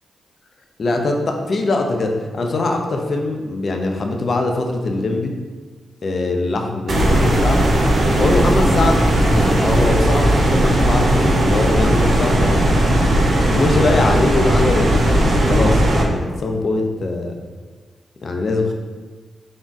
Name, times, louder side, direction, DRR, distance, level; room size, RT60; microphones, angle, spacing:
voice 1, 0.8-5.3 6.0-7.6 8.2-12.9 13.5-17.4 18.2-18.7, left 2 dB, 55° left, 3 dB, 0.5 m, -22 dB
sound 1, 6.9-16.0, right 1 dB, 60° right, 0.8 m, -16 dB
3.7 x 3.6 x 2.5 m, 1.4 s
supercardioid pair, 45°, 0 cm